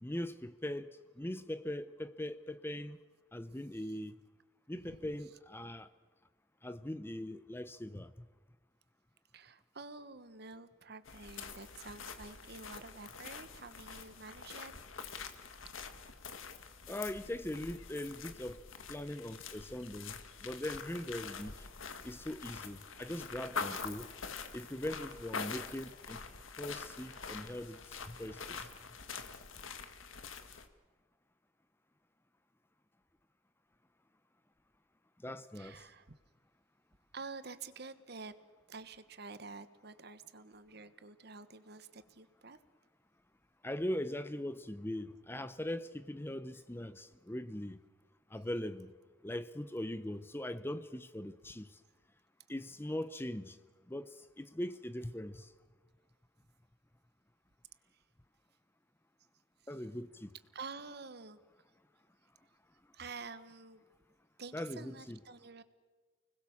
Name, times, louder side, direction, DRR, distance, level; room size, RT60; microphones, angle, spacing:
voice 1, 0.0-3.0 3.3-4.2 4.7-5.9 6.6-8.1 16.9-18.6 18.9-21.7 22.0-24.1 24.5-26.2 26.6-28.7 35.2-35.9 43.6-47.8 48.3-48.9 49.2-51.8 52.5-53.6 53.9-55.5 59.7-60.3 64.5-65.2, left 1 dB, 10° left, 0.7 m, -41 dB
voice 2, 4.7-5.1 9.3-14.7 35.5-36.1 37.1-38.3 38.7-42.6 60.5-61.4 62.9-63.8 64.4-65.6, right 4 dB, 55° right, 1.3 m, -49 dB
sound 1, 11.1-30.7, left 5 dB, 85° left, 1.9 m, -45 dB
30.0 x 20.5 x 7.2 m
head